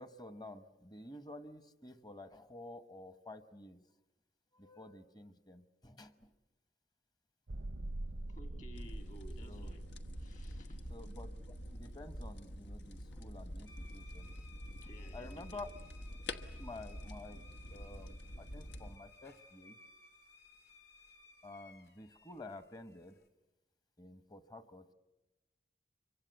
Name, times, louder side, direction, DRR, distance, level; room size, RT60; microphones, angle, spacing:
voice 1, 0.0-3.8 4.5-6.3 9.4-9.7 10.9-11.4 11.7-14.3 15.1-15.7 16.6-17.4 17.7-19.8 21.4-23.2 24.0-24.9, left 2 dB, 25° left, 1.0 m, -51 dB
sound 1, 7.5-14.6, right 1 dB, 90° right, 0.8 m, -46 dB
voice 2, 8.3-9.9 10.2-11.0 14.8-15.7 16.5-16.7, equal, 45° left, 2.2 m, -56 dB
sound 2, 8.7-19.0, left 1 dB, 85° left, 1.3 m, -47 dB
sound 3, 13.7-23.3, left 3 dB, 65° left, 2.9 m, -60 dB
25.5 x 24.0 x 8.0 m
head